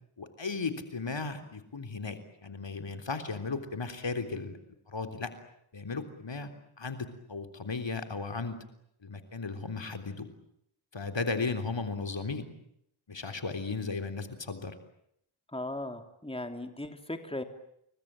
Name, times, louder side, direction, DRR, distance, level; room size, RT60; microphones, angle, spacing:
voice 1, 0.2-4.6 4.9-5.3 5.7-6.5 6.8-8.6 9.0-10.3 10.9-12.5 13.1-14.8, left 4 dB, 60° left, 7 dB, 3.6 m, -35 dB
voice 2, 15.5-17.4, left 1 dB, 10° left, 6 dB, 3.2 m, -37 dB
30.0 x 22.0 x 8.9 m, 0.75 s
cardioid pair, 45°, 49 cm